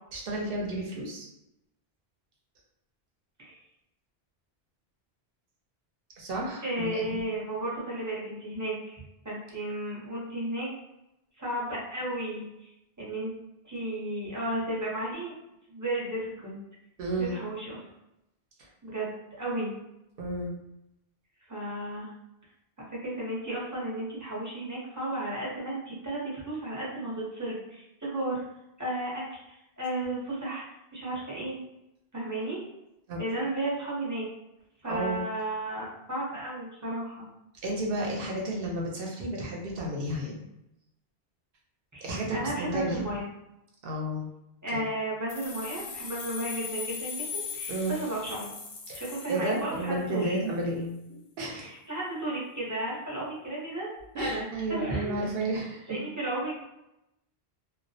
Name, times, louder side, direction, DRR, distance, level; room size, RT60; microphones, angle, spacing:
voice 1, 0.1-1.3 6.2-7.2 17.0-17.4 18.6-18.7 20.2-20.5 33.1-33.2 34.9-35.2 37.6-40.4 42.0-43.1 43.8-44.3 44.7-44.9 47.7-48.0 48.9-50.9 51.4-51.7 54.1-56.0, right 1 dB, 65° right, -1 dB, 0.8 m, -32 dB
voice 2, 6.6-10.7 11.4-12.4 13.0-13.3 13.6-15.3 15.7-16.6 17.2-17.8 18.8-19.1 19.4-19.7 21.5-22.1 23.0-28.4 28.8-30.6 30.9-31.6 32.1-32.7 33.2-34.3 34.8-37.3 41.9-43.3 44.6-48.5 48.9-50.4 51.5-53.9 54.2-55.2 55.9-56.6, right 1 dB, 20° right, -6 dB, 0.6 m, -33 dB
sound 1, 45.3-50.1, left 6 dB, 60° left, 0.6 m, -39 dB
2.2 x 2.1 x 2.6 m, 0.87 s
omnidirectional pair, 1.1 m